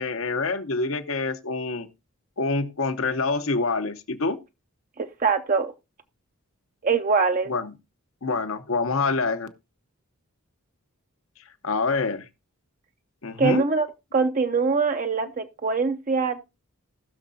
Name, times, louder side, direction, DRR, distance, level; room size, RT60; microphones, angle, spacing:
voice 1, 0.0-1.9 2.4-4.4 7.5-7.7 8.2-9.5 11.6-12.2 13.2-13.6, left 3 dB, 65° left, 0.9 m, -26 dB
voice 2, 5.0-5.7 6.8-7.5 13.4-13.9 14.1-16.4, right 4 dB, 35° right, 0.6 m, -23 dB
19.5 x 6.5 x 2.7 m
head